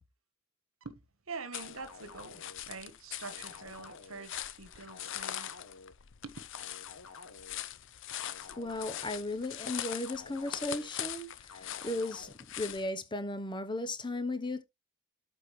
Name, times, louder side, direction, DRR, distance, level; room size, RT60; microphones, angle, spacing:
voice 1, 1.3-5.5 6.2-6.4, right 4 dB, 70° right, 1.3 m, -45 dB
sound 1, 1.5-12.9, left 11 dB, 60° left, 0.6 m, -42 dB
sound 2, 1.6-2.6 3.2-4.3 4.9-5.9 6.5-7.6 8.2-9.2 9.8-10.9 11.5-12.3, left 4 dB, 85° left, 1.3 m, -51 dB
voice 2, 8.6-14.6, left 2 dB, 20° left, 0.8 m, -36 dB
12.5 x 4.4 x 3.1 m
head